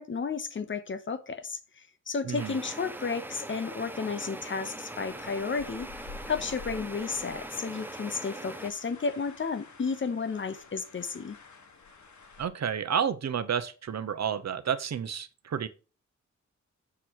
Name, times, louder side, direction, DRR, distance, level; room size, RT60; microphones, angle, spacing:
voice 1, 0.0-5.9 6.3-11.4, left 5 dB, 40° left, 0.9 m, -33 dB
voice 2, 2.2-2.6 12.4-15.7, right 8 dB, 65° right, 0.8 m, -30 dB
sound 1, 2.4-8.7, right 1 dB, 5° right, 0.5 m, -41 dB
sound 2, 4.8-12.5, left 5 dB, 75° left, 1.5 m, -49 dB
7.2 x 4.5 x 6.4 m
wide cardioid pair, 180°, 29 cm